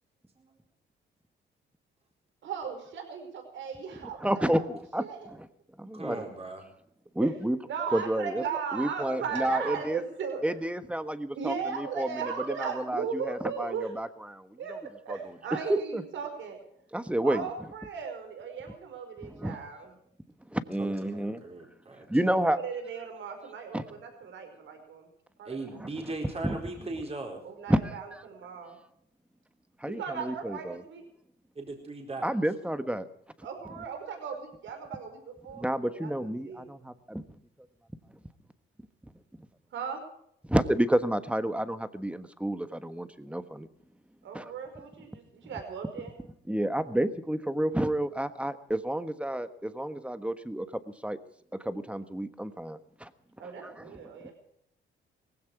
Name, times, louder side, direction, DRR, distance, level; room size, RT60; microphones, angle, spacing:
voice 1, 2.4-4.7 5.0-5.3 7.2-7.3 7.7-10.4 11.3-13.9 14.6-14.8 15.0-16.6 17.2-19.9 22.4-25.1 25.4-25.6 27.4-28.8 29.8-31.0 33.4-36.1 36.4-36.7 39.7-40.0 44.2-46.1 53.4-54.3, right 6 dB, 70° right, 6 dB, 5.1 m, -37 dB
voice 2, 4.2-5.5 5.8-6.2 7.1-7.6 7.9-8.4 8.7-10.0 10.4-14.8 15.1-15.2 15.7-16.0 16.9-17.5 19.2-19.6 20.5-21.4 22.1-22.6 23.7-23.8 25.8-25.9 26.4-26.6 27.7-28.2 29.8-30.8 32.2-33.0 35.5-37.2 40.5-43.7 44.3-44.4 46.5-51.2 51.5-53.1 53.4-54.2, right 1 dB, 5° right, 11 dB, 1.3 m, -30 dB
voice 3, 5.9-6.6 9.2-9.8 15.1-15.3 20.8-22.1 25.4-27.4 31.5-32.3, right 2 dB, 30° right, 1 dB, 4.6 m, -39 dB
18.5 x 16.5 x 4.8 m, 0.73 s
cardioid pair, 90°, 20 cm